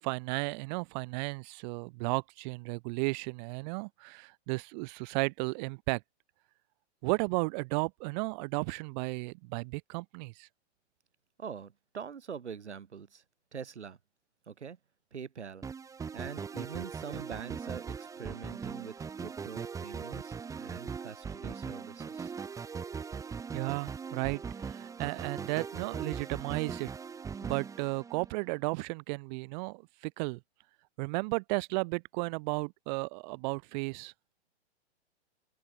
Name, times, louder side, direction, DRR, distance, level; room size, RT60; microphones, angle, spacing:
voice 1, 0.0-6.0 7.0-10.5 23.5-26.9 27.4-30.4 31.0-34.1, right 28 dB, 40° right, 7.4 m, -34 dB
voice 2, 11.4-13.2 13.5-14.0 14.5-14.8 15.1-15.7 16.1-22.3, right 7 dB, 85° right, 7.0 m, -44 dB
sound 1, 15.6-28.5, right 6 dB, 10° right, 1.2 m, -40 dB
hypercardioid pair, 135°, 34 cm